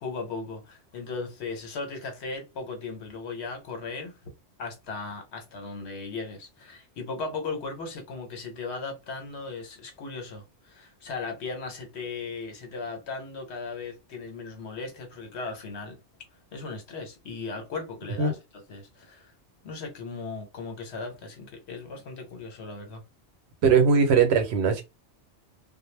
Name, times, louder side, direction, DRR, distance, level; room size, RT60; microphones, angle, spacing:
voice 1, 0.0-4.1 4.6-16.0 16.5-18.4 18.7-19.3 19.6-23.0, left 4 dB, 75° left, 1.1 m, -37 dB
voice 2, 23.6-24.8, right 5 dB, 75° right, 0.9 m, -20 dB
2.1 x 2.0 x 3.1 m
omnidirectional pair, 1.1 m